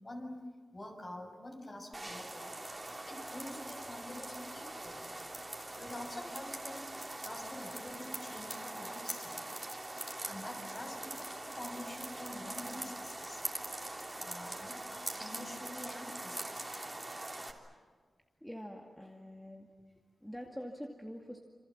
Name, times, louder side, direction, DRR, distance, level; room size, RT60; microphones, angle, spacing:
voice 1, 0.0-2.5 3.0-5.1 5.7-6.9 7.2-9.6 10.3-13.4 14.2-16.7, left 1 dB, 30° left, 3 dB, 6.3 m, -47 dB
sound 1, 1.9-17.5, right 2 dB, 20° right, 3.3 m, -43 dB
voice 2, 18.4-19.7 20.2-21.4, equal, 5° left, 0 dB, 2.2 m, -45 dB
27.5 x 27.5 x 7.3 m, 1.5 s
wide cardioid pair, 110°, 0 cm